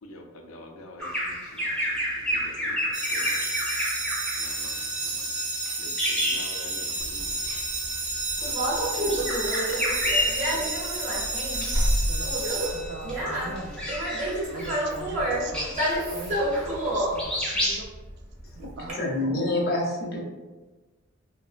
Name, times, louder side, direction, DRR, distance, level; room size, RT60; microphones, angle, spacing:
voice 1, 0.0-3.5 4.4-5.2 5.7-7.4 8.4-9.3 10.5-10.8, left 1 dB, 90° left, 2 dB, 0.5 m, -46 dB
Bird vocalization bird call bird song, 1.0-7.1 7.4-7.6 8.6-10.9 11.4-12.0 12.4-16.9 17.2-17.8, equal, 5° left, 0.6 m, -30 dB
sound 1, 2.9-13.3, right 2 dB, 85° right, 0.7 m, -31 dB
Conversation, 7.0-18.9, right 1 dB, 35° right, 0.8 m, -29 dB
voice 2, 12.0-13.8 14.4-15.7 16.1-17.9 18.5-19.1, right 3 dB, 55° right, 2 dB, 0.3 m, -41 dB
voice 3, 18.8-20.2, left 2 dB, 50° left, -3 dB, 0.6 m, -27 dB
2.8 x 2.0 x 2.4 m, 1.2 s
head